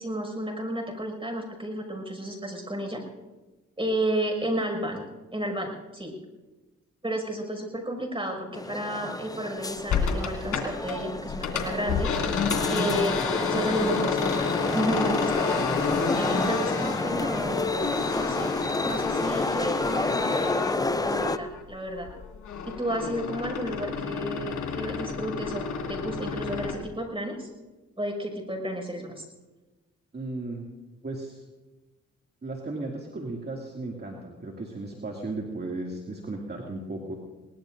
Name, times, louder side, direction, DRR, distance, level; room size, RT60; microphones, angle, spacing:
voice 1, 0.0-3.0 3.8-5.1 5.3-6.1 7.0-12.1 12.7-15.6 16.1-18.6 18.8-22.1 22.6-27.5 28.0-29.3, right 1 dB, 20° right, 3 dB, 5.9 m, -32 dB
sound 1, 8.5-21.4, left 2 dB, 10° left, 0.6 m, -30 dB
sound 2, 9.9-11.0 11.3-21.6 22.0-26.8, left 5 dB, 80° left, 2.6 m, -30 dB
voice 2, 30.1-30.7 31.0-31.4 32.4-37.1, right 2 dB, 35° right, 0 dB, 2.4 m, -35 dB
23.0 x 19.5 x 2.6 m, 1.1 s
cardioid pair, 60°, 30 cm